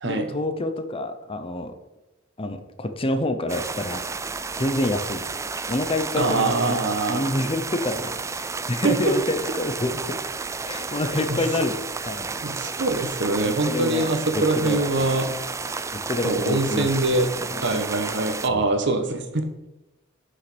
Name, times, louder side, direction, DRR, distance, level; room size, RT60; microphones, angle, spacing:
voice 1, 0.0-1.7 2.4-4.0 4.6-5.2 5.7-6.8 7.1-10.2 10.6-12.4 13.4-15.1 16.1-16.9 17.1-17.5 17.7-17.8 18.5-18.7, left 1 dB, 30° left, 8 dB, 0.8 m, -28 dB
sound 1, 3.5-18.5, right 4 dB, 15° right, 0.3 m, -32 dB
voice 2, 6.2-7.4 8.8-9.0 11.3-11.4 12.4-15.3 16.2-17.3 17.6-19.4, right 2 dB, 60° right, 6 dB, 1.2 m, -23 dB
8.4 x 5.8 x 6.1 m, 0.98 s
head